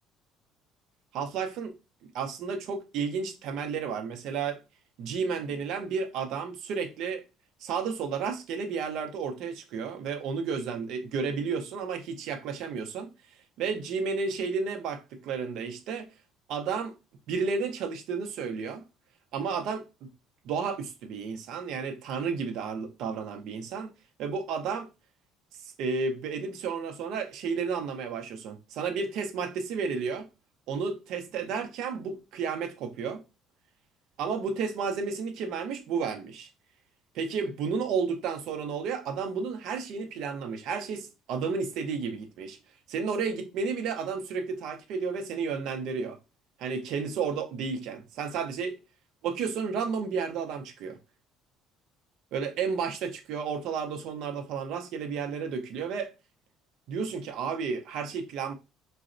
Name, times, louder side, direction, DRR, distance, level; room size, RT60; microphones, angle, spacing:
voice 1, 1.1-1.7 2.1-4.6 5.0-7.2 7.6-13.1 13.6-16.1 16.5-17.0 17.3-18.8 19.3-20.1 20.4-23.9 24.2-24.9 25.6-30.3 30.7-33.2 34.2-36.5 37.1-42.6 42.9-46.2 46.6-48.7 49.2-51.0 52.3-56.1 56.9-58.5, right 5 dB, 70° right, 0.5 m, -32 dB
3.9 x 2.0 x 2.5 m
cardioid pair, 120°, 0 cm